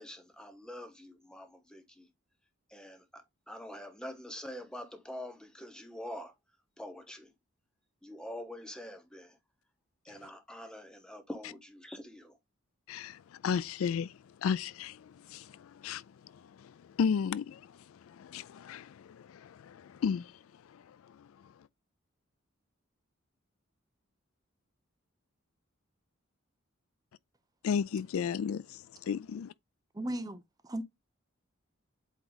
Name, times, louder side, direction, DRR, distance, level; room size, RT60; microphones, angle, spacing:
voice 1, 0.0-2.1 2.7-6.3 6.8-7.3 8.0-9.4 10.0-12.4, left 1 dB, 5° left, 1.0 m, -45 dB
voice 2, 12.9-14.1 14.4-16.0 16.3-20.3 20.7-21.0 27.6-29.5, left 6 dB, 85° left, 0.3 m, -34 dB
voice 3, 29.9-30.8, right 1 dB, 20° right, 0.7 m, -37 dB
8.1 x 3.1 x 4.0 m
head